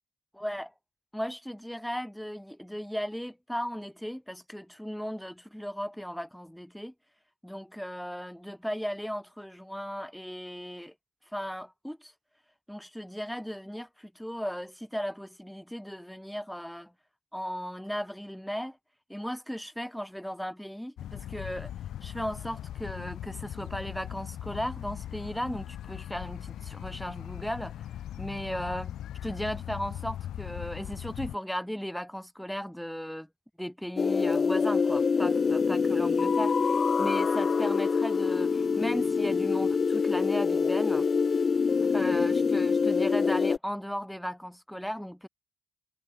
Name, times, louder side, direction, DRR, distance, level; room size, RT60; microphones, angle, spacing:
voice 1, 0.4-0.7 1.1-6.9 7.4-10.9 11.3-12.1 12.7-16.9 17.3-18.8 19.1-21.7 22.0-27.9 28.2-28.9 29.2-33.3 33.6-41.1 41.8-45.3, equal, ahead, 2.0 m, -36 dB
sound 1, 21.0-31.4, left 11 dB, 75° left, 0.9 m, -39 dB
sound 2, 34.0-43.6, left 5 dB, 40° left, 1.7 m, -25 dB
cardioid pair, 90°, 0 cm